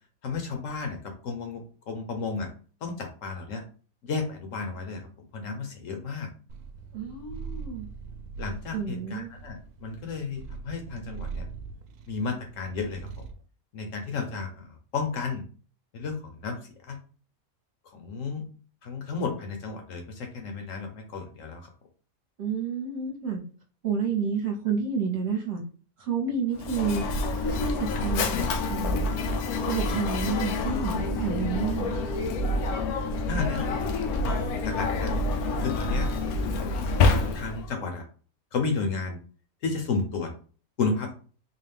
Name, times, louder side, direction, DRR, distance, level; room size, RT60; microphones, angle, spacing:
voice 1, 0.2-1.6 1.9-2.5 2.8-3.6 4.0-5.1 5.3-6.3 8.4-11.5 12.1-13.1 13.7-15.4 15.9-17.0 17.9-18.4 18.8-21.7 33.3-33.9 34.2-35.1 35.6-36.1 37.1-38.0 38.5-39.2 39.6-40.3 40.8-41.1, left 4 dB, 65° left, 4 dB, 1.1 m, -32 dB
Purr, 6.5-13.4, right 5 dB, 85° right, 1.1 m, -41 dB
voice 2, 6.9-7.9 8.7-9.3 22.4-23.4 23.8-25.6 26.0-27.0 27.4-29.1 29.6-32.0, right 5 dB, 50° right, 0 dB, 1.1 m, -30 dB
Mechanisms, 26.6-37.7, left 3 dB, 85° left, 1.1 m, -27 dB
3.8 x 2.3 x 3.4 m, 0.39 s
omnidirectional pair, 1.5 m